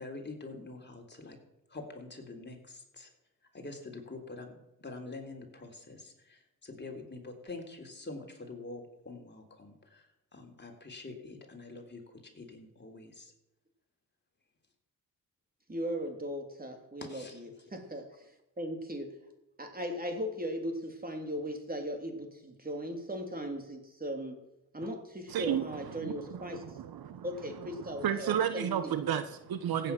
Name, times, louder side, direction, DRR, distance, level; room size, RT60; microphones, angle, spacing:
voice 1, 0.0-1.4 1.7-3.1 3.5-13.3 17.1-17.7, left 3 dB, 25° left, 2 dB, 3.7 m, -46 dB
voice 2, 15.7-18.3 18.6-19.1 19.6-24.4 24.7-26.6 27.2-28.9 29.8-29.9, equal, 20° right, 5 dB, 3.3 m, -38 dB
voice 3, 25.3-27.3 27.6-29.9, right 9 dB, 65° right, 11 dB, 1.1 m, -33 dB
15.5 x 8.8 x 6.1 m, 0.92 s
supercardioid pair, 55°, 40 cm